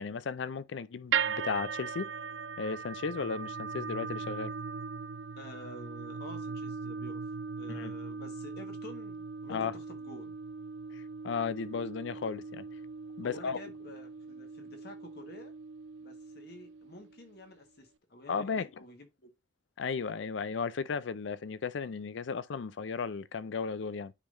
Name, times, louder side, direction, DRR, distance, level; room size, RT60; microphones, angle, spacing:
voice 1, 0.0-2.1 2.6-4.5 7.7-7.9 9.5-9.7 10.9-12.7 13.2-13.6 18.3-18.7 19.8-24.1, left 5 dB, 75° left, 0.4 m, -35 dB
sound 1, 1.1-17.3, right 6 dB, 75° right, 0.4 m, -39 dB
voice 2, 5.4-7.2 7.6-10.3 13.2-15.5 16.0-19.3, left 1 dB, 55° left, 1.4 m, -50 dB
9.8 x 3.8 x 2.6 m
head